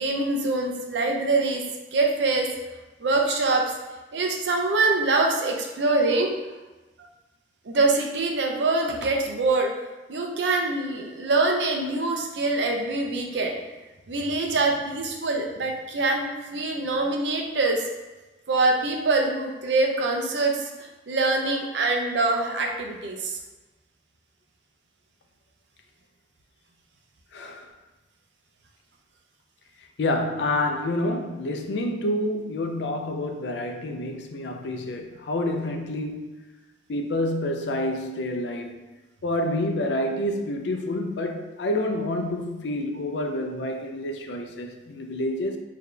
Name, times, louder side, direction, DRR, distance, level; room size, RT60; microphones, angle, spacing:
voice 1, 0.0-1.6 1.9-2.5 3.0-3.6 4.1-6.3 7.6-9.7 10.1-13.6 14.1-17.9 18.5-23.4, right 3 dB, 80° right, 0.6 m, -24 dB
voice 2, 27.3-27.7 30.0-36.4 36.9-38.8 39.2-45.6, left 1 dB, 75° left, 0.5 m, -28 dB
4.0 x 2.8 x 3.3 m
head